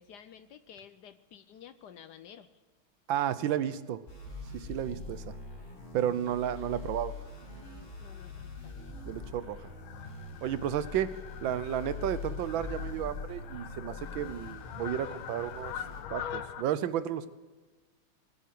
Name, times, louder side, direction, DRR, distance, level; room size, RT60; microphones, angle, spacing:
voice 1, 0.0-2.5 6.6-6.7 8.0-8.8, left 8 dB, 70° left, 11 dB, 1.0 m, -52 dB
voice 2, 3.1-4.0 4.5-5.3 5.9-7.1 9.1-9.7 10.4-11.1 11.4-15.7 16.1-17.3, right 10 dB, 75° right, 14 dB, 1.4 m, -32 dB
sound 1, 4.1-16.0, left 3 dB, 35° left, 5.8 m, -43 dB
Fowl, 7.2-16.6, left 9 dB, 90° left, 1.6 m, -44 dB
20.5 x 8.1 x 7.6 m, 1.3 s
omnidirectional pair, 2.3 m